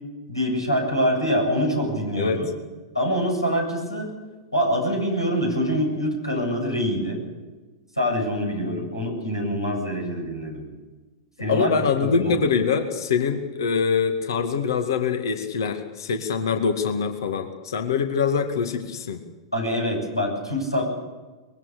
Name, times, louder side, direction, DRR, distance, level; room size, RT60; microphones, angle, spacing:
voice 1, 0.3-2.5 2.9-4.1 4.5-7.2 8.0-10.6 11.4-12.4 19.5-20.8, equal, 90° left, 0 dB, 7.7 m, -25 dB
voice 2, 11.5-19.2, left 6 dB, 60° left, 7 dB, 2.0 m, -24 dB
23.0 x 21.0 x 6.8 m, 1.3 s
figure-of-eight pair, 95°, 2 cm